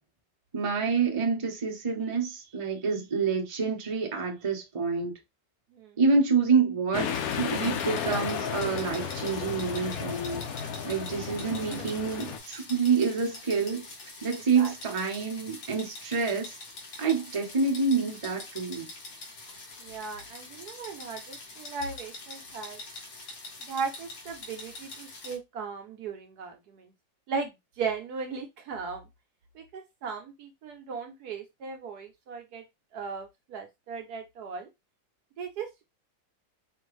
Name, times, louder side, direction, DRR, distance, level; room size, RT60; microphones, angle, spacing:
voice 1, 0.5-5.1 6.0-10.4 10.8-13.8 14.2-16.6 17.0-18.9, right 5 dB, 30° right, 0.5 m, -27 dB
sound 1, 6.9-12.4, left 7 dB, 75° left, 0.8 m, -33 dB
sound 2, 7.0-25.4, left 2 dB, 50° left, 1.4 m, -45 dB
voice 2, 19.8-22.8 23.7-26.9 27.3-29.0 29.5-32.6 32.9-34.7 35.4-35.8, right 5 dB, 65° right, 1.0 m, -37 dB
4.4 x 2.5 x 3.1 m
omnidirectional pair, 2.0 m